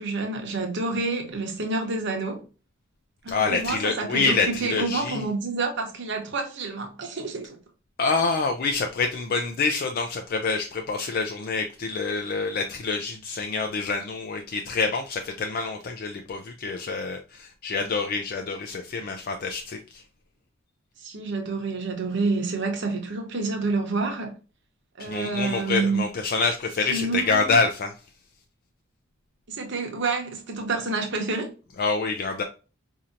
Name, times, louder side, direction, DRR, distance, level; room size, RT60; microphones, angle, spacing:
voice 1, 0.0-2.4 3.2-7.6 21.0-24.4 25.0-26.0 26.8-27.5 29.5-31.5, right 3 dB, 65° right, 0.9 m, -28 dB
voice 2, 3.3-5.2 8.0-20.0 25.0-27.9 31.8-32.4, left 4 dB, 50° left, 0.4 m, -26 dB
4.3 x 2.7 x 2.5 m
head